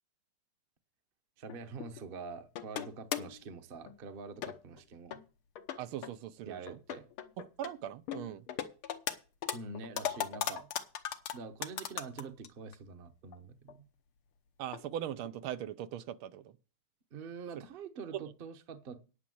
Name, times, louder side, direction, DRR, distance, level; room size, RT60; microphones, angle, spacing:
voice 1, 1.4-5.2 6.4-7.1 9.5-10.7 11.3-13.9 17.1-19.1, right 4 dB, 40° right, 0.8 m, -45 dB
sound 1, 1.5-2.0 2.5-3.4 3.9-4.0 4.4-4.8 5.1-5.2 5.6-6.1 6.7-7.7 8.1-9.1 9.4-12.5 12.7-12.8 13.3-13.4 13.7-13.8 14.7-14.8 15.2-15.3, left 10 dB, 85° left, 1.8 m, -37 dB
voice 2, 5.8-6.8 7.4-8.5 14.6-16.6 18.1-18.2, right 11 dB, 85° right, 1.6 m, -40 dB
10.0 x 6.1 x 7.7 m
omnidirectional pair, 2.3 m